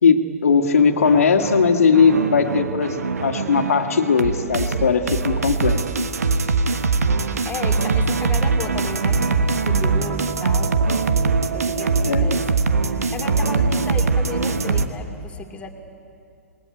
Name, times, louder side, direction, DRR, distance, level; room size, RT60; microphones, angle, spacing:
voice 1, 0.0-5.8 12.0-12.3, left 5 dB, 65° left, 5 dB, 2.0 m, -18 dB
sound 1, 0.8-14.9, right 4 dB, 70° right, 1.3 m, -22 dB
voice 2, 7.4-10.7 11.5-12.4 13.1-15.7, left 4 dB, 15° left, 2 dB, 2.7 m, -34 dB
28.0 x 21.0 x 9.2 m, 2.5 s
figure-of-eight pair, 115°, 8 cm